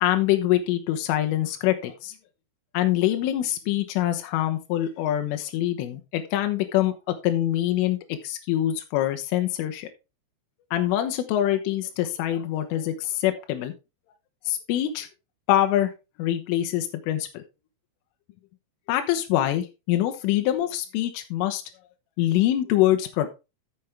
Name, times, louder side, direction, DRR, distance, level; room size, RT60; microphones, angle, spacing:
voice 1, 0.0-2.1 2.7-9.9 10.7-13.7 14.5-15.1 15.5-15.9 16.2-17.4 18.9-21.6 22.2-23.3, left 13 dB, 80° left, 6 dB, 3.5 m, -24 dB
14.5 x 5.9 x 3.5 m, 0.27 s
omnidirectional pair, 5.8 m